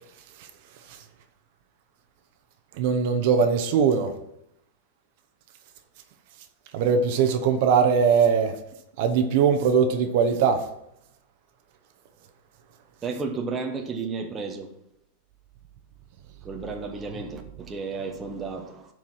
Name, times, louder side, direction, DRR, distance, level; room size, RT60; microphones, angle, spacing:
voice 1, 2.8-4.1 6.7-8.5 9.0-10.6, right 6 dB, 50° right, 0.9 m, -21 dB
voice 2, 13.0-14.7 16.4-18.9, right 4 dB, 15° right, 0.9 m, -32 dB
11.0 x 4.7 x 5.7 m
supercardioid pair, 160°, 0 cm